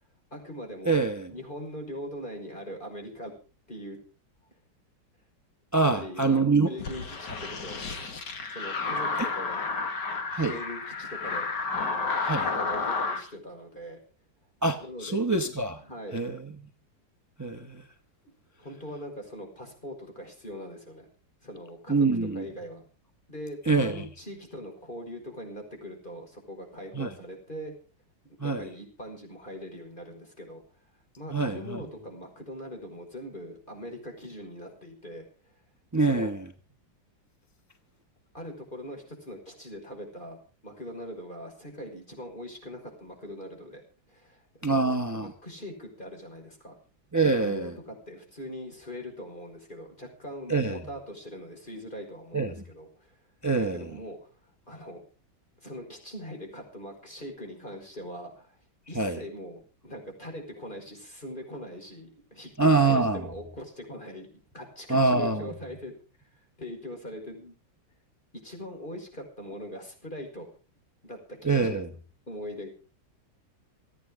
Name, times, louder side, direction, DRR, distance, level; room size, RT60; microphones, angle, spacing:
voice 1, 0.3-3.3 3.7-4.0 5.8-8.0 8.5-9.6 10.4-11.5 11.8-14.0 14.8-15.2 15.9-16.2 18.6-21.1 21.4-22.8 23.3-27.7 28.4-30.6 31.2-35.3 35.9-36.3 38.3-43.8 44.1-44.9 45.2-46.8 47.2-53.1 53.6-54.3 54.7-55.1 55.6-58.5 58.9-65.9 66.6-67.6 68.4-70.5 71.0-71.8 72.3-72.7, equal, 25° left, 5.5 m, -41 dB
voice 2, 0.9-1.3 5.7-6.7 9.2-9.3 10.3-10.6 12.2-12.5 14.6-15.8 16.1-16.5 17.4-17.8 21.9-22.5 23.7-24.1 26.9-27.1 28.4-28.7 31.3-31.8 35.9-36.5 44.6-45.3 47.1-47.7 50.5-50.8 52.3-52.5 53.4-53.9 58.9-59.2 62.6-63.3 64.9-65.5 71.4-71.9, right 3 dB, 15° right, 0.7 m, -25 dB
sound 1, 6.8-13.2, left 4 dB, 60° left, 2.5 m, -31 dB
28.5 x 9.6 x 3.7 m
omnidirectional pair, 2.1 m